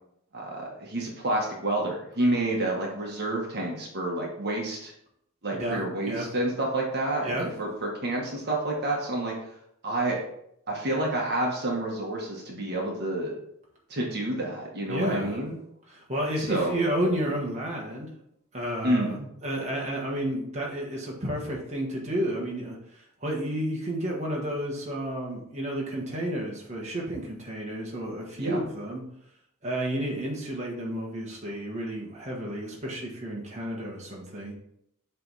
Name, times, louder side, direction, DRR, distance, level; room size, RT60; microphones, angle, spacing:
voice 1, 0.3-4.9 5.4-9.3 9.8-10.2 10.7-13.3 13.9-15.6 16.4-16.7 18.8-19.3 28.4-28.6, right 1 dB, 50° right, -1 dB, 1.3 m, -29 dB
voice 2, 5.5-6.3 7.2-7.5 14.9-15.4 15.9-18.1 18.5-19.1 19.4-29.0 29.6-34.5, right 1 dB, 35° right, -3 dB, 1.3 m, -31 dB
7.7 x 3.4 x 4.0 m, 0.74 s
head